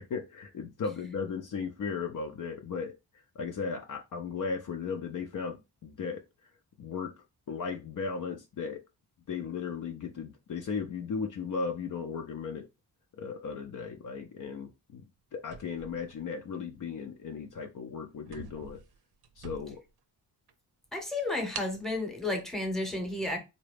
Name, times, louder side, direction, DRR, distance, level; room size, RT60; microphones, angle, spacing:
voice 1, 0.0-2.9 3.4-6.2 6.8-7.1 7.5-8.8 9.3-12.7 13.1-15.0 15.3-18.8 19.4-19.8, left 5 dB, 55° left, 0.5 m, -36 dB
sound 1, 15.4-16.7 17.4-17.6 17.9-18.0 18.2-20.0 20.5-20.6 21.5-21.9, right 5 dB, 75° right, 0.6 m, -45 dB
voice 2, 20.9-23.4, left 2 dB, ahead, 0.8 m, -32 dB
3.9 x 2.2 x 3.2 m
wide cardioid pair, 125°, 39 cm